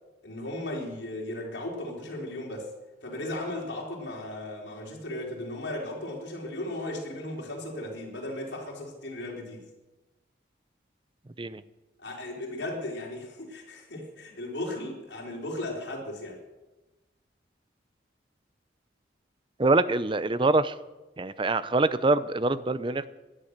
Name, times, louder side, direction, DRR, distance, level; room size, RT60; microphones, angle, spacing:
voice 1, 0.2-2.7 3.0-9.6 12.0-16.4, left 1 dB, 70° left, -1 dB, 4.1 m, -36 dB
voice 2, 19.6-20.7 21.2-23.1, right 2 dB, 25° right, 14 dB, 0.6 m, -24 dB
18.5 x 11.0 x 6.6 m, 1.1 s
head